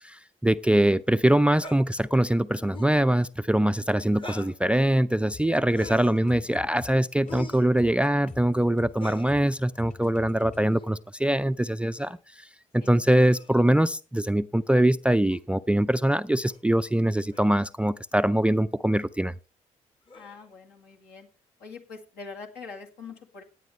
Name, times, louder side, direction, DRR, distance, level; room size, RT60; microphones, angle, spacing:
voice 1, 0.0-12.5 12.7-19.3, right 1 dB, 5° right, 0.4 m, -23 dB
sound 1, 1.5-1.8 2.6-3.0 4.1-4.6 5.7-6.2 7.3-7.7 8.9-9.3 10.6-10.9 12.0-12.2 13.2-13.6 15.3-15.4 16.5-16.6 17.3-17.5 18.3-18.5 20.1-20.4, left 3 dB, 30° left, 1.2 m, -43 dB
sound 2, 5.3-10.6, left 3 dB, 45° left, 2.0 m, -45 dB
voice 2, 6.2-6.6 12.8-13.1 20.1-21.3 21.6-23.4, left 4 dB, 65° left, 2.0 m, -44 dB
17.0 x 9.4 x 3.2 m
hypercardioid pair, 40°, 17 cm